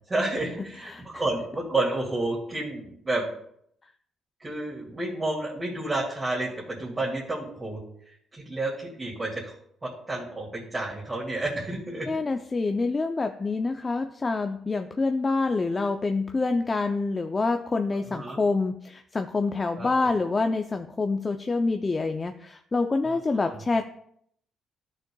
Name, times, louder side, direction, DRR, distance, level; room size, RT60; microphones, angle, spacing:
voice 1, 0.1-3.2 4.4-7.8 8.3-9.5 9.8-12.1 17.9-18.4 19.8-20.1 23.0-23.2, right 2 dB, 25° right, -6 dB, 2.3 m, -30 dB
voice 2, 12.1-23.9, left 3 dB, 30° left, 6 dB, 0.5 m, -26 dB
12.5 x 6.5 x 2.3 m, 0.69 s
cardioid pair, 90°, 0 cm